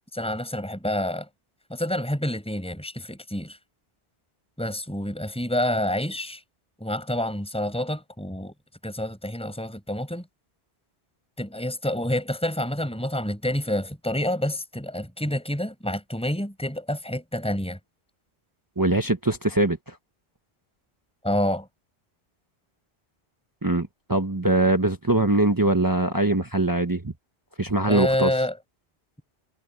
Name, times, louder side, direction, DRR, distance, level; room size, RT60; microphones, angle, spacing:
voice 1, 0.1-1.3 1.7-3.6 4.6-6.4 6.8-8.5 8.8-10.3 11.4-17.8 21.2-21.7 27.9-28.6, left 1 dB, 5° left, 5.1 m, -28 dB
voice 2, 18.8-20.0 23.6-27.1 27.6-28.3, right 2 dB, 20° right, 1.0 m, -22 dB
omnidirectional pair, 1.1 m